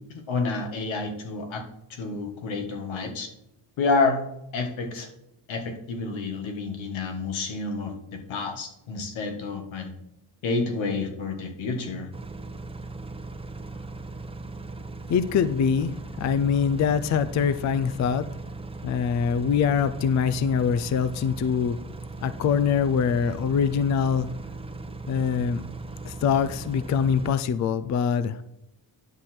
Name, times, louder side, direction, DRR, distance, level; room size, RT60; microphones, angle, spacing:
voice 1, 0.1-1.6 2.0-3.3 3.8-4.3 4.5-5.1 5.5-9.9 10.4-12.1, left 3 dB, 85° left, 4 dB, 1.7 m, -29 dB
sound 1, 12.1-27.3, right 3 dB, 15° right, 0.7 m, -38 dB
voice 2, 15.1-15.9 16.2-18.2 18.8-21.8 22.2-24.3 25.1-25.6 26.1-28.4, left 7 dB, 40° left, 13 dB, 0.4 m, -24 dB
10.0 x 6.4 x 4.4 m, 0.83 s
cardioid pair, 140°, 45 cm